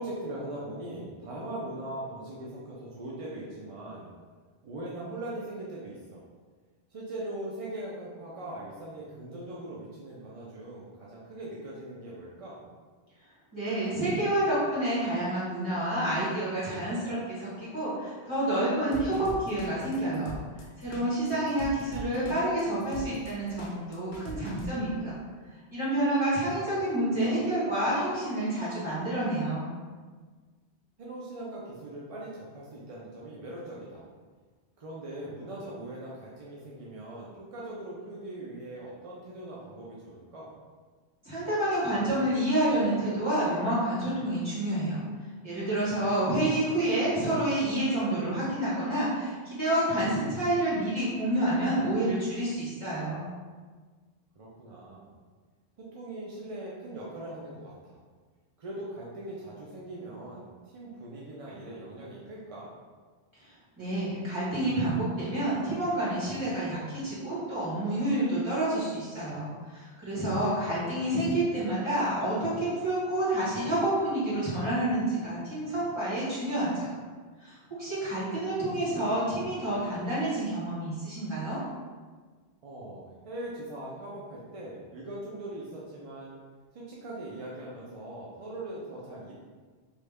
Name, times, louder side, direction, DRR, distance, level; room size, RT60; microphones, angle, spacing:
voice 1, 0.0-4.1 4.6-6.2 6.9-12.6 27.2-27.5 31.0-34.0 34.8-40.5 54.4-55.1 55.8-58.0 58.6-62.7 70.3-70.6 71.1-71.2 82.6-86.4 86.7-89.3, right 1 dB, 50° right, -5 dB, 0.4 m, -40 dB
voice 2, 13.5-20.4 20.8-25.1 25.7-29.7 41.2-45.0 45.4-53.2 63.8-76.9 77.4-81.6, right 1 dB, 25° right, -10 dB, 1.6 m, -28 dB
sound 1, 18.9-24.7, left 1 dB, 80° left, 0.8 m, -40 dB
3.1 x 2.3 x 3.4 m, 1.5 s
omnidirectional pair, 1.1 m